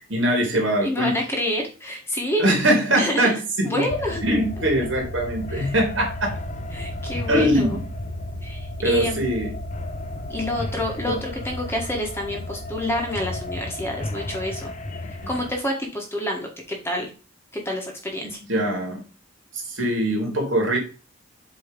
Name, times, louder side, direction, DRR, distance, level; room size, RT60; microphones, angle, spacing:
voice 1, 0.0-1.1 2.4-3.9 4.2-6.4 7.3-7.9 8.8-9.5 11.1-11.2 15.2-15.3 18.2-19.0 19.6-20.8, right 1 dB, 65° right, 1 dB, 2.7 m, -22 dB
voice 2, 0.8-2.5 3.0-4.2 5.5-5.7 6.7-7.8 8.4-9.3 10.3-14.7 15.1-17.1 17.5-18.4, left 1 dB, 10° left, 1 dB, 1.4 m, -28 dB
sound 1, 3.9-15.5, left 1 dB, 35° left, 0.8 m, -33 dB
7.7 x 3.1 x 5.1 m, 0.34 s
head